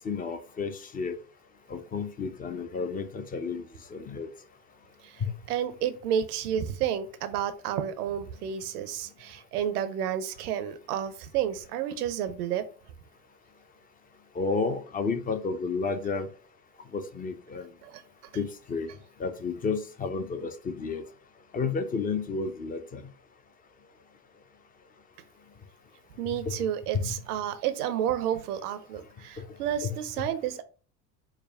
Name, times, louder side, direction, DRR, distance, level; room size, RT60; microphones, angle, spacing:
voice 1, 0.0-1.2 1.7-4.3 5.2-5.3 14.3-16.3 16.9-17.7 18.3-18.9 19.2-21.0 21.5-23.1 26.3-26.6 26.9-27.1 29.4-29.5 29.8-30.3, left 4 dB, 20° left, 9 dB, 0.5 m, -31 dB
voice 2, 5.5-12.7 17.8-18.0 26.2-30.6, right 9 dB, 65° right, 11 dB, 0.6 m, -31 dB
4.8 x 2.2 x 3.3 m, 0.38 s
figure-of-eight pair, 65°, 49 cm